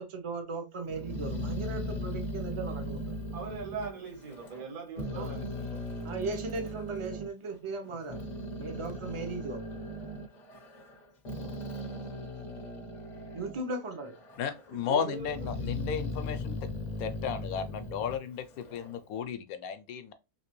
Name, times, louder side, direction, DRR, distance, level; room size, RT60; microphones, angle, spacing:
voice 1, 0.0-3.1 5.2-5.3 6.0-8.2 8.6-9.6 13.3-14.2 15.0-15.1, right 3 dB, 45° right, 0.4 m, -37 dB
Growling, 0.9-4.7 5.0-7.3 7.8-13.7 14.0-14.7 15.2-18.9, left 1 dB, 50° left, 0.5 m, -38 dB
voice 2, 3.3-5.8 11.3-11.5 14.7-15.6, right 5 dB, 75° right, 1.5 m, -41 dB
voice 3, 14.4-16.6 17.0-20.1, left 7 dB, 80° left, 1.0 m, -34 dB
3.2 x 2.9 x 2.9 m
omnidirectional pair, 1.5 m